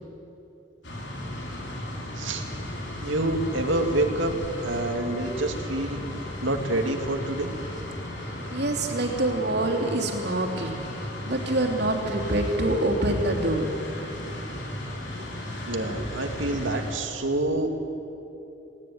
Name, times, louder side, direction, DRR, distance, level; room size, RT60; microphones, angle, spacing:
sound 1, 0.8-16.9, left 1 dB, 60° left, 4.4 m, -35 dB
voice 1, 3.0-4.4 4.6-6.0 6.4-7.5 15.7-17.7, right 2 dB, 80° right, 4 dB, 2.5 m, -27 dB
voice 2, 8.2-13.7 16.0-16.1, right 1 dB, 55° right, 2 dB, 3.1 m, -26 dB
19.5 x 18.5 x 9.5 m, 2.9 s
head